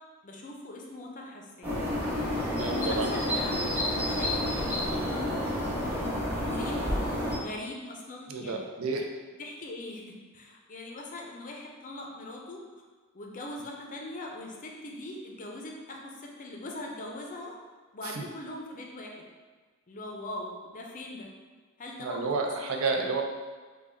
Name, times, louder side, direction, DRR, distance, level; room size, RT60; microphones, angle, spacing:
voice 1, 0.2-1.7 2.6-3.6 3.9-5.3 6.3-6.8 7.3-8.6 9.4-10.0 10.3-12.6 13.1-17.6 17.9-19.1 19.9-21.3 21.8-22.4 22.6-23.1, left 2 dB, 40° left, 0 dB, 0.5 m, -41 dB
sound 1, 1.6-7.4, left 1 dB, 10° right, 1.1 m, -29 dB
voice 2, 2.3-3.1 8.3-9.1 18.0-18.3 22.0-23.2, right 4 dB, 75° right, 2 dB, 0.5 m, -31 dB
3.6 x 2.3 x 3.4 m, 1.4 s
head